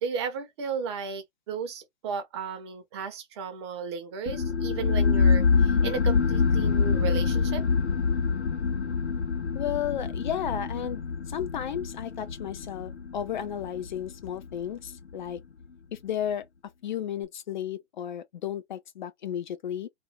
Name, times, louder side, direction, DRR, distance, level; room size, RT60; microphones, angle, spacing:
voice 1, 0.0-7.7, right 6 dB, 25° right, 0.6 m, -34 dB
sound 1, 4.3-15.4, left 5 dB, 70° left, 1.0 m, -26 dB
voice 2, 9.6-15.4 16.0-16.4 16.8-19.9, left 9 dB, 45° left, 0.5 m, -33 dB
2.5 x 2.1 x 3.1 m
figure-of-eight pair, 130°, 35 cm